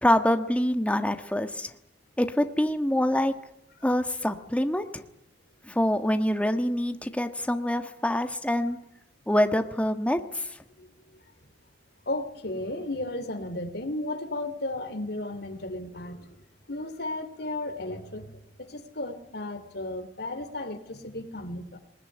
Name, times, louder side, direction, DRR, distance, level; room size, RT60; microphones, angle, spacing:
voice 1, 0.0-1.7 2.2-3.3 3.8-5.0 5.7-8.8 9.3-10.4, left 1 dB, 10° left, 1.4 m, -25 dB
voice 2, 10.8-11.2 12.1-16.4 16.7-21.8, left 2 dB, 65° left, 2.8 m, -34 dB
20.5 x 19.5 x 9.7 m
head